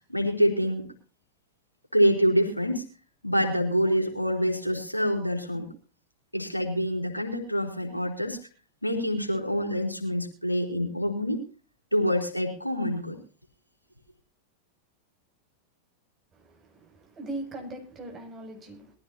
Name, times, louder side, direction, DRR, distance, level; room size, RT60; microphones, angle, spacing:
voice 1, 0.1-0.9 1.9-2.9 3.2-5.7 6.3-8.4 8.8-11.4 11.9-13.2, equal, 90° left, 2 dB, 3.7 m, -26 dB
voice 2, 16.3-18.9, right 2 dB, 25° right, 2 dB, 6.8 m, -40 dB
21.5 x 15.0 x 2.7 m, 0.36 s
figure-of-eight pair, 90°, 0 cm